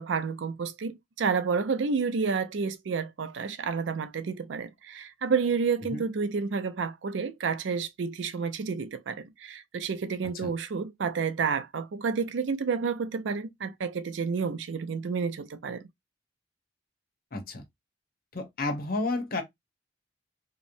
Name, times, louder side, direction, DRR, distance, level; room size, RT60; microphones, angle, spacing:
voice 1, 0.0-15.9, right 5 dB, 80° right, 0.4 m, -30 dB
voice 2, 17.3-17.6 18.3-19.4, left 2 dB, 55° left, 0.8 m, -31 dB
2.9 x 2.0 x 2.5 m
head